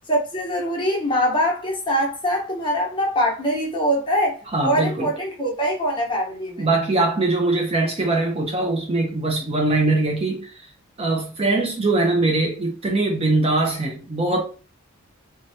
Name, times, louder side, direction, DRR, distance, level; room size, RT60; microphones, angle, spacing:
voice 1, 0.1-6.7, equal, 20° left, 0.9 m, -23 dB
voice 2, 4.5-5.1 6.6-10.7 11.0-14.4, right 2 dB, 25° right, 0.5 m, -22 dB
3.2 x 2.2 x 2.6 m
head